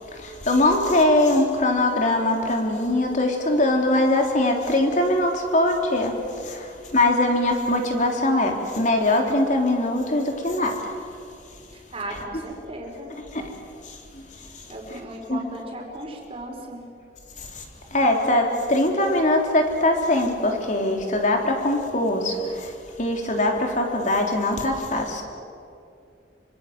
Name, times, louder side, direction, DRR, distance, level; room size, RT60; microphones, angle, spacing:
voice 1, 0.1-10.9 12.1-12.2 13.3-13.5 13.8-14.3 15.3-15.4 17.4-17.6 17.9-25.2, left 1 dB, 45° left, 2 dB, 3.7 m, -22 dB
voice 2, 11.7-13.1 14.7-16.9, right 1 dB, 35° right, 1 dB, 4.9 m, -36 dB
26.0 x 24.5 x 7.7 m, 2.5 s
head